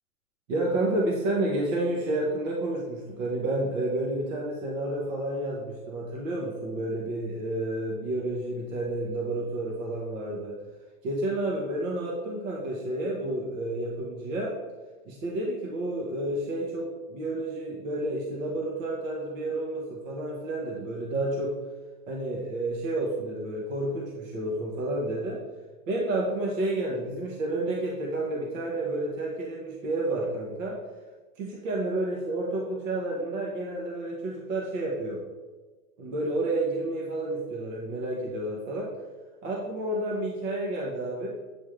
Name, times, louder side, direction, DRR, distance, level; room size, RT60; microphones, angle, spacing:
voice 1, 0.5-10.5 11.0-14.6 15.1-21.6 22.1-25.4 25.9-30.8 31.4-35.2 36.0-38.9 39.4-41.3, right 1 dB, 55° right, -1 dB, 1.3 m, -30 dB
8.4 x 3.7 x 3.2 m, 1.3 s
hypercardioid pair, 135°, 46 cm